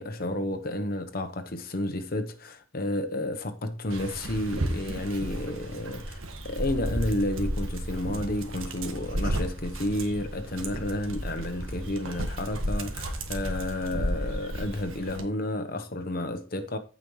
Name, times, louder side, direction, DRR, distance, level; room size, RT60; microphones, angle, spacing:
voice 1, 0.0-16.8, left 1 dB, 45° left, 1.0 m, -31 dB
Dog, 3.9-15.2, right 1 dB, 85° right, 1.5 m, -33 dB
14.5 x 5.1 x 3.2 m
head